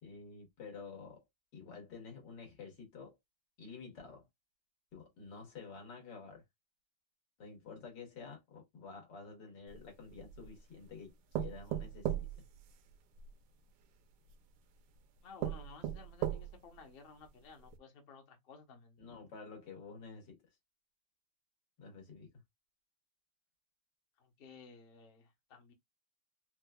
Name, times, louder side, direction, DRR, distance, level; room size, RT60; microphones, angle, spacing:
voice 1, 0.0-1.2 1.5-3.2 3.6-4.3 4.9-6.4 7.4-12.3 19.0-20.4 21.8-22.3, left 5 dB, 80° left, 2.1 m, -50 dB
sound 1, 9.7-10.6 11.3-13.3 14.3-14.4 15.0-15.1 15.4-16.8 17.2-17.3 17.7-17.8, right 11 dB, 80° right, 1.2 m, -38 dB
voice 2, 15.2-19.0 24.2-25.7, left 4 dB, 45° left, 0.8 m, -55 dB
4.5 x 2.3 x 2.2 m
omnidirectional pair, 1.9 m